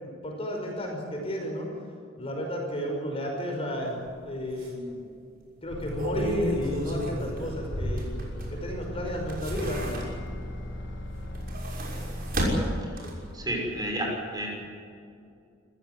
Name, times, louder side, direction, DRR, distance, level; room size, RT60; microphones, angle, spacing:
voice 1, 0.0-1.7 2.2-5.0 5.6-8.1 8.5-10.0, equal, 30° left, 1 dB, 5.6 m, -32 dB
sound 1, 4.1-4.2 4.6-4.7 5.6-8.7 9.1-10.4 11.2-13.4 13.7-13.8, equal, 45° right, 6.2 m, -32 dB
sound 2, 5.7-12.4, equal, 60° left, 5.4 m, -37 dB
voice 2, 13.3-14.5, right 1 dB, 20° right, 0 dB, 6.3 m, -31 dB
26.5 x 15.5 x 9.7 m, 2.5 s
head